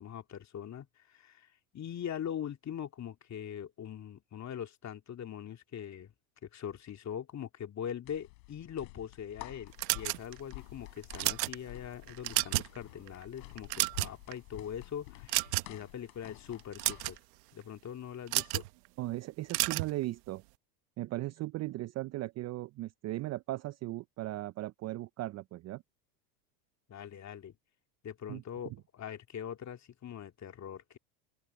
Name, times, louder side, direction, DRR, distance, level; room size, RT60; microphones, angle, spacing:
voice 1, 0.0-1.5 1.7-6.1 6.4-17.2 17.5-18.6 26.9-27.6 28.0-31.0, left 9 dB, 35° left, 2.4 m, -42 dB
sound 1, 8.0-17.2, left 28 dB, 70° left, 3.9 m, -51 dB
sound 2, 9.8-10.5 11.0-11.6 12.1-12.8 13.1-13.2 13.6-14.3 15.3-15.8 16.6-17.2 18.3-18.7 19.5-19.9, right 23 dB, 75° right, 1.2 m, -31 dB
voice 2, 19.0-20.4 21.0-25.8 28.3-28.8, right 17 dB, 35° right, 0.5 m, -37 dB
open air
hypercardioid pair, 95°, 50 cm